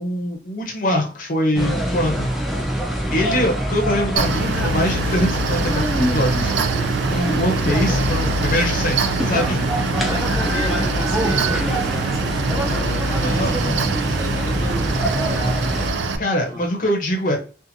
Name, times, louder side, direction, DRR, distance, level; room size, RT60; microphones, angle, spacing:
voice 1, 0.0-2.3 3.1-6.5 7.0-9.6 13.2-13.9 16.2-17.4, left 1 dB, 50° left, 0.6 m, -23 dB
sound 1, 1.5-15.9, right 1 dB, ahead, 0.4 m, -24 dB
Mechanical fan, 4.2-16.2, right 4 dB, 85° right, 0.4 m, -24 dB
voice 2, 10.0-16.1 16.4-16.6 17.2-17.4, equal, 20° right, 1.1 m, -32 dB
2.7 x 2.4 x 2.6 m
head